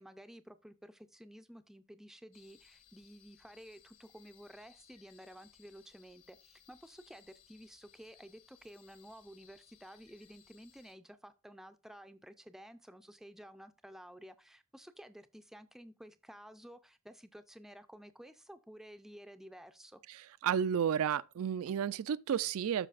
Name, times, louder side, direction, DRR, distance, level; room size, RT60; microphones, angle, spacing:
voice 1, 0.0-20.0, equal, ahead, 0.4 m, -53 dB
sound 1, 2.3-11.0, left 9 dB, 60° left, 1.5 m, -64 dB
voice 2, 20.1-22.9, right 8 dB, 70° right, 0.3 m, -32 dB
13.0 x 4.9 x 2.4 m
head